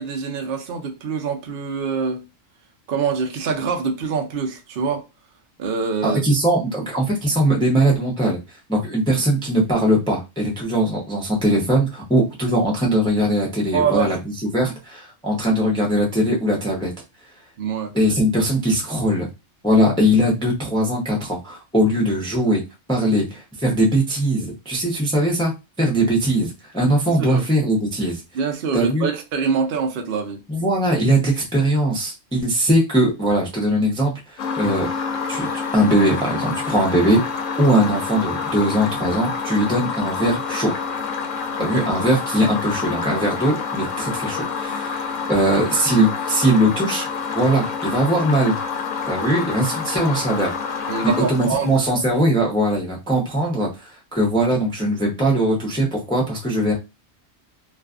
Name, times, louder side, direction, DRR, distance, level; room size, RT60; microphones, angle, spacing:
voice 1, 0.0-2.2 2.9-5.0 5.6-6.2 13.7-14.2 17.6-17.9 27.2-27.4 28.3-30.4 41.6-41.8 45.2-45.4 50.9-51.8, right 5 dB, 60° right, 0.6 m, -25 dB
voice 2, 6.0-8.4 8.7-14.2 14.4-16.9 17.9-19.3 19.6-22.6 22.9-25.5 25.8-28.2 28.7-29.0 30.5-34.9 35.3-37.2 37.6-40.7 41.6-47.1 47.3-48.6 49.1-50.5 51.0-56.7, right 1 dB, 5° left, 0.5 m, -20 dB
sound 1, 34.4-52.4, left 5 dB, 90° left, 1.0 m, -28 dB
2.4 x 2.4 x 2.3 m
omnidirectional pair, 1.3 m